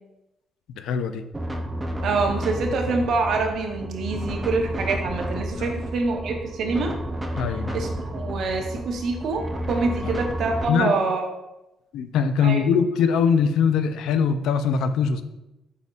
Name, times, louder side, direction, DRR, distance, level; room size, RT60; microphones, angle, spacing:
voice 1, 0.8-1.3 5.6-5.7 7.4-7.8 10.0-10.1 10.7-10.9 11.9-15.2, left 6 dB, 85° left, 10 dB, 0.3 m, -22 dB
sound 1, 1.3-10.7, equal, 15° right, 0.5 m, -31 dB
voice 2, 2.0-6.9 7.7-11.3 12.4-12.6, right 3 dB, 70° right, 3 dB, 0.8 m, -25 dB
5.1 x 4.2 x 2.4 m, 0.94 s
cardioid pair, 90°, 0 cm